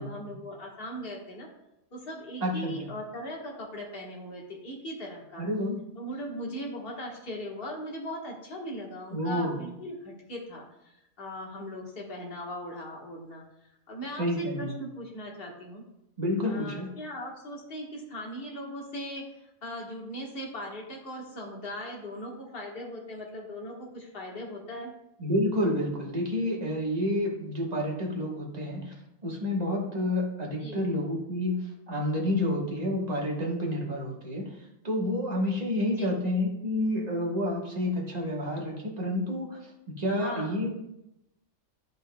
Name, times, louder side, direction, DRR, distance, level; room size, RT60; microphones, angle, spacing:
voice 1, 0.0-1.5 1.9-5.4 6.0-13.4 13.9-15.8 16.4-24.9 30.6-30.8 35.8-36.2 40.1-40.6, equal, 45° left, -2 dB, 1.5 m, -39 dB
voice 2, 2.4-2.7 5.4-5.8 9.1-9.6 14.2-14.7 16.2-16.9 25.2-28.9 29.2-31.6 31.9-34.5 34.8-40.7, left 1 dB, 30° right, -2 dB, 1.3 m, -29 dB
10.5 x 5.3 x 2.2 m, 0.86 s
omnidirectional pair, 1.4 m